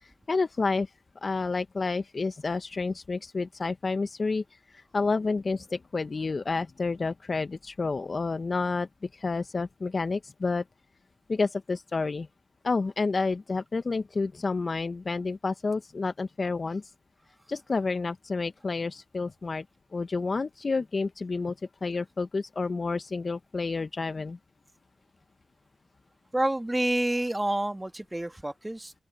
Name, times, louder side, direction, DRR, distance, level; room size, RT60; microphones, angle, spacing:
voice 1, 0.0-0.9 1.2-10.6 11.3-12.3 12.6-16.9 17.5-19.6 19.9-21.5 21.8-24.4, left 3 dB, 50° left, 1.1 m, -30 dB
voice 2, 26.3-28.9, right 1 dB, 15° right, 1.6 m, -28 dB
open air
supercardioid pair, 40°, 0 cm